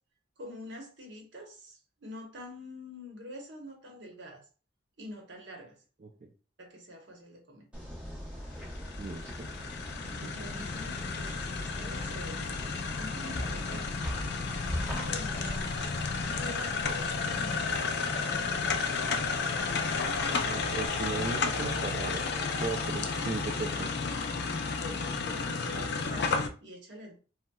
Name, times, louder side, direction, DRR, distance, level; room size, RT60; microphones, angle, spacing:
voice 1, 0.4-4.5 5.0-5.8 6.6-7.6 10.3-12.5 13.0-14.0 14.9-15.9 16.3-18.5 24.6-27.2, left 1 dB, 60° right, 1 dB, 0.9 m, -46 dB
sound 1, 7.7-20.9, equal, 5° right, 0.8 m, -41 dB
sound 2, 8.5-26.5, left 4 dB, 55° left, 0.4 m, -32 dB
voice 2, 9.0-9.5 10.2-10.3 20.4-22.3 22.6-24.0, right 3 dB, 40° right, -2 dB, 0.4 m, -37 dB
4.0 x 2.1 x 2.3 m, 0.36 s
head